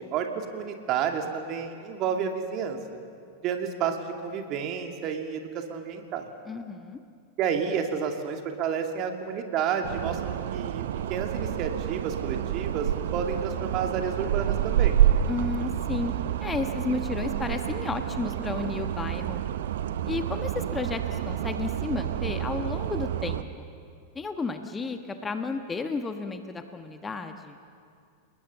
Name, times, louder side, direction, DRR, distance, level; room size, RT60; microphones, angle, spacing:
voice 1, 0.0-2.8 3.4-6.3 7.4-10.8 11.1-15.0, right 7 dB, 35° right, 4 dB, 2.4 m, -30 dB
voice 2, 6.4-7.0 15.3-16.1 16.4-19.4 20.0-23.5 24.1-27.6, left 4 dB, 15° left, 7 dB, 1.3 m, -32 dB
sound 1, 9.8-23.4, right 11 dB, 60° right, 0.9 m, -28 dB
29.5 x 19.5 x 7.0 m, 2.3 s
figure-of-eight pair, 90°, 0 cm